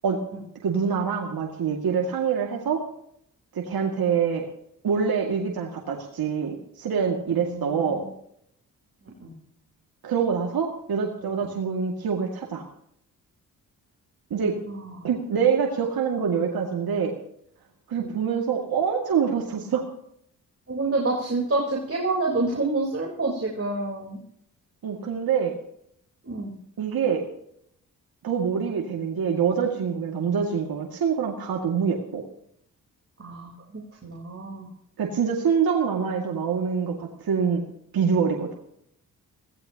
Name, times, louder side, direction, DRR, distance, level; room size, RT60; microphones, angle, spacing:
voice 1, 0.6-2.8 3.5-4.5 4.8-8.0 10.0-12.6 14.3-14.5 15.0-17.1 17.9-19.9 24.8-25.5 26.8-27.2 28.2-32.2 35.0-37.6 37.9-38.5, right 6 dB, 70° right, 0 dB, 2.2 m, -25 dB
voice 2, 7.3-8.0 9.2-9.3 11.2-11.6 14.7-15.1 18.0-18.1 20.7-24.2 26.2-26.5 33.2-33.5 34.0-34.7, right 2 dB, 35° right, -2 dB, 3.9 m, -28 dB
20.5 x 16.0 x 2.9 m, 0.70 s
supercardioid pair, 50°, 38 cm